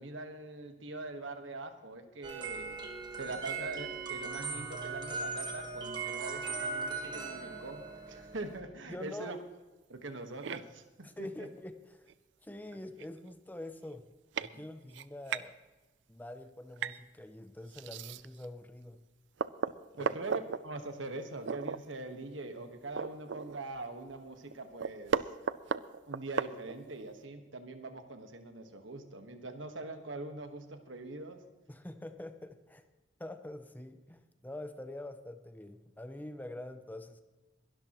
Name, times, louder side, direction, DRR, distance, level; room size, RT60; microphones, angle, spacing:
voice 1, 0.0-2.8 3.1-9.4 9.9-11.5 14.5-14.6 20.0-25.3 26.1-31.4, right 2 dB, 85° right, 7 dB, 1.5 m, -43 dB
sound 1, 2.2-8.6, right 4 dB, 25° right, 1.5 m, -39 dB
voice 2, 8.9-9.4 11.0-12.1 12.4-14.1 14.4-15.6 16.1-19.0 20.0-20.1 31.7-32.8 33.2-37.2, left 1 dB, 10° left, 9 dB, 0.6 m, -45 dB
sound 2, 10.4-10.6 12.1-12.2 12.7-12.8 13.0-13.3 13.9-14.0 14.3-14.5 14.9-15.5 16.8-17.0 17.7-18.5 18.9-19.0 19.4-20.6 21.4-21.8 22.2-22.3 22.6-23.8 24.1-24.2 24.5-27.0, right 6 dB, 70° right, 0.4 m, -35 dB
21.5 x 12.5 x 3.0 m, 1.2 s
head